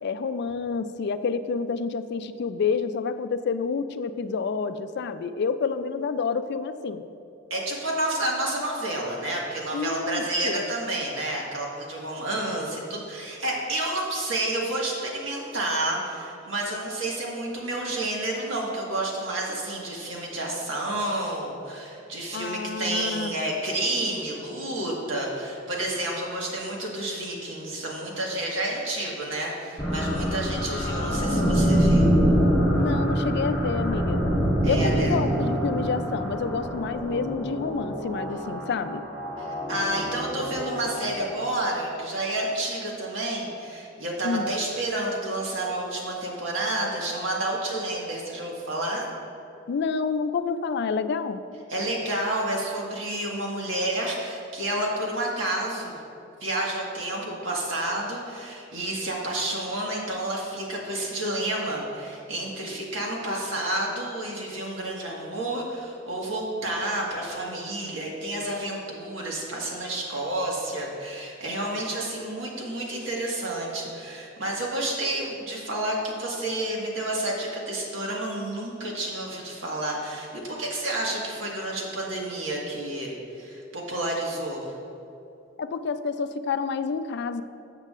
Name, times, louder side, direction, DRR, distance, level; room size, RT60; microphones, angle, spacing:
voice 1, 0.0-7.0 9.7-10.7 22.3-23.3 32.7-34.2 34.6-39.0 44.2-44.5 49.7-51.4 85.6-87.4, left 5 dB, 60° left, 11 dB, 0.3 m, -29 dB
voice 2, 7.5-32.2 34.6-35.1 39.4-49.1 51.7-56.0 56.4-84.7, right 1 dB, 75° right, -2 dB, 1.7 m, -30 dB
sound 1, 29.8-41.7, equal, 5° right, 1.7 m, -25 dB
13.0 x 7.5 x 2.5 m, 2.8 s
head